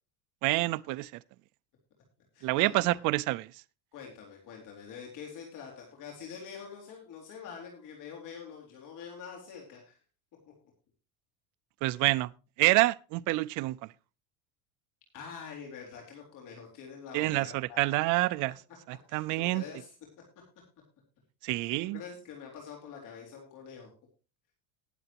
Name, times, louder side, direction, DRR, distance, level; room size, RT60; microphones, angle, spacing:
voice 1, 0.4-1.1 2.4-3.5 11.8-12.3 12.6-13.8 17.1-18.5 18.9-19.6 21.4-22.0, right 20 dB, 45° right, 0.6 m, -27 dB
voice 2, 2.3-3.0 3.9-10.0 12.0-12.1 15.1-17.9 19.1-19.9 21.6-23.9, left 6 dB, 45° left, 3.7 m, -45 dB
19.5 x 7.9 x 2.9 m
cardioid pair, 155°, 45 cm